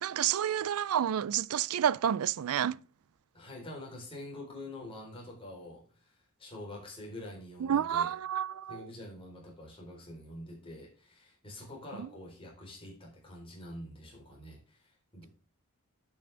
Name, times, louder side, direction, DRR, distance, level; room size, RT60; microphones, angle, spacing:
voice 1, 0.0-2.8 7.6-8.8, right 9 dB, 70° right, 0.4 m, -29 dB
voice 2, 3.3-6.1 6.4-8.1 8.7-15.3, left 1 dB, 25° left, 3.9 m, -46 dB
10.0 x 6.3 x 3.4 m
head